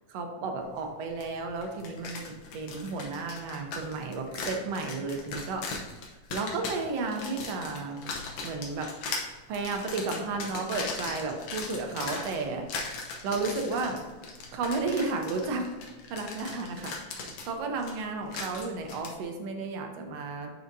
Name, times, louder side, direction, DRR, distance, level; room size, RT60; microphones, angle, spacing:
voice 1, 0.1-5.6 6.3-8.0 8.4-8.9 9.5-14.0 14.5-15.7 16.1-20.5, right 3 dB, 70° right, 3 dB, 1.8 m, -33 dB
sound 1, 1.2-1.3 1.6-19.1, left 4 dB, 65° left, 1.9 m, -39 dB
9.6 x 5.0 x 2.7 m, 1.2 s
omnidirectional pair, 3.3 m